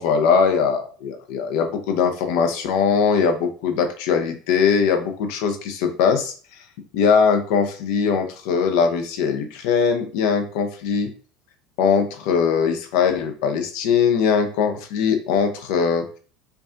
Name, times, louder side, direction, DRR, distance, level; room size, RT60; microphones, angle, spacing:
voice 1, 0.0-6.3 6.9-11.1 11.8-16.0, left 6 dB, 70° left, 5 dB, 0.6 m, -21 dB
4.6 x 2.4 x 2.5 m, 0.41 s
hypercardioid pair, 80°, 0 cm